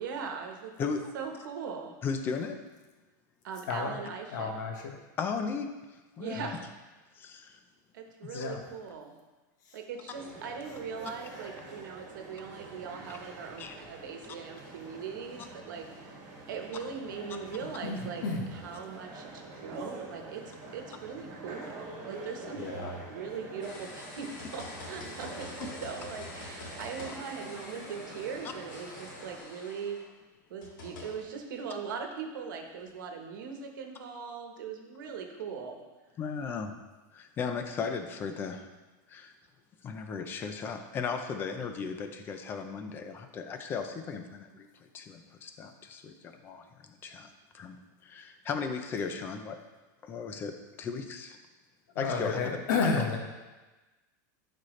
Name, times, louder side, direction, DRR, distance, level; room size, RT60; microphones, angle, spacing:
voice 1, 0.0-2.0 3.4-4.5 6.2-6.6 7.9-9.1 9.7-18.2 18.5-20.4 20.7-22.6 23.1-30.0 30.5-35.8, right 6 dB, 80° right, 3 dB, 1.1 m, -40 dB
voice 2, 0.8-1.1 2.0-2.6 5.2-6.4 7.1-7.6 8.2-8.5 13.6-13.7 19.7-19.8 36.2-36.7 37.1-38.7 39.1-39.3 39.8-47.3 47.5-47.8 48.0-49.6 50.0-51.4 52.0-52.4 52.8-52.9, left 5 dB, 20° left, 7 dB, 0.5 m, -36 dB
voice 3, 4.3-4.9 6.4-6.5 8.3-8.6 9.6-9.8 17.8-18.5 22.6-23.0 51.9-53.2, left 4 dB, 70° left, 1 dB, 1.5 m, -31 dB
sound 1, 10.1-29.4, right 2 dB, 35° right, 1.9 m, -46 dB
sound 2, 23.6-30.1 30.6-31.3 32.8-32.9, left 2 dB, 90° left, 2.3 m, -46 dB
11.5 x 4.2 x 3.2 m, 1.2 s
supercardioid pair, 165°, 10 cm